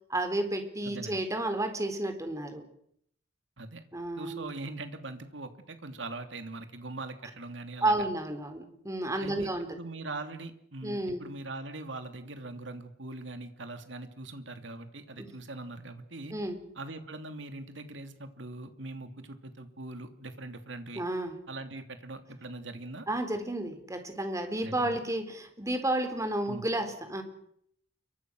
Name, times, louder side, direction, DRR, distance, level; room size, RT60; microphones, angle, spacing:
voice 1, 0.1-2.6 3.9-4.5 7.8-9.7 10.8-11.2 15.2-15.3 16.3-16.6 21.0-21.4 23.1-27.2, right 1 dB, 15° right, 7 dB, 4.0 m, -31 dB
voice 2, 0.8-1.2 3.6-3.8 4.2-7.9 9.2-16.3 16.8-21.0 21.5-23.1 24.6-25.0 26.4-26.6, right 2 dB, 70° right, 8 dB, 2.8 m, -41 dB
29.0 x 24.5 x 6.3 m, 0.70 s
head